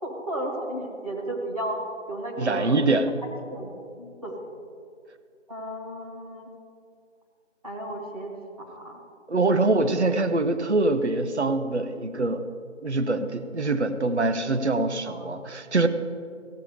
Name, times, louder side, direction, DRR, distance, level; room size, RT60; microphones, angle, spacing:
voice 1, 0.0-1.8 2.1-2.8 3.5-4.4 5.5-6.5 7.6-8.3 8.6-9.0 15.1-15.2, right 1 dB, 30° right, -2 dB, 1.6 m, -34 dB
voice 2, 2.4-3.1 9.3-12.4 12.8-15.9, right 2 dB, 65° right, 9 dB, 0.9 m, -24 dB
16.5 x 8.7 x 4.9 m, 2.3 s
figure-of-eight pair, 165°, 37 cm